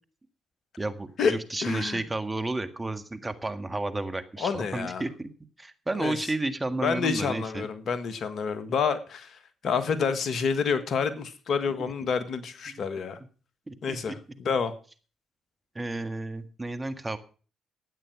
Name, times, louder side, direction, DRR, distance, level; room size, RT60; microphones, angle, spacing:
voice 1, 0.8-5.3 5.6-7.7 11.7-11.8 12.7-12.8 13.7-14.0 15.7-17.2, right 2 dB, 20° right, 9 dB, 1.6 m, -32 dB
voice 2, 1.6-2.0 4.4-5.0 6.0-6.2 6.8-13.2 13.8-14.7, left 6 dB, 55° left, 11 dB, 1.6 m, -28 dB
13.0 x 9.1 x 6.1 m, 0.39 s
hypercardioid pair, 50°, 0 cm